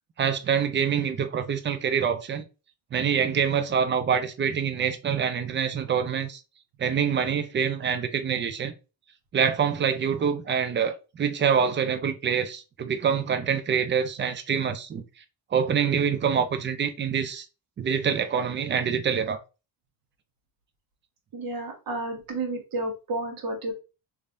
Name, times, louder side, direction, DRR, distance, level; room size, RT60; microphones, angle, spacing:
voice 1, 0.2-2.4 2.9-6.4 6.8-8.7 9.3-15.0 15.5-17.5 17.8-19.4, right 7 dB, 30° right, 0.4 m, -25 dB
voice 2, 21.3-23.7, right 2 dB, 50° right, 1.2 m, -31 dB
3.4 x 3.2 x 2.5 m
cardioid pair, 150°, 43 cm